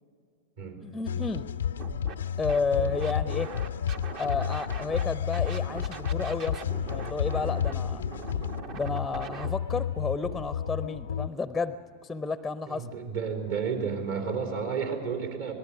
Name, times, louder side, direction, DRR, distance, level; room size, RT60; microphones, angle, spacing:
voice 1, 0.8-1.5 2.4-3.6 4.1-6.6 6.9-8.0 8.7-12.9, left 4 dB, 5° left, 13 dB, 0.7 m, -31 dB
sound 1, 1.1-11.3, left 9 dB, 65° left, 0.5 m, -31 dB
Scratching (performance technique), 1.8-2.1 2.5-5.0 5.3-9.5, right 6 dB, 40° right, 1.2 m, -41 dB
voice 2, 12.7-15.5, right 6 dB, 60° right, 2 dB, 3.8 m, -31 dB
26.0 x 19.0 x 6.2 m, 2.5 s
figure-of-eight pair, 90°, 0 cm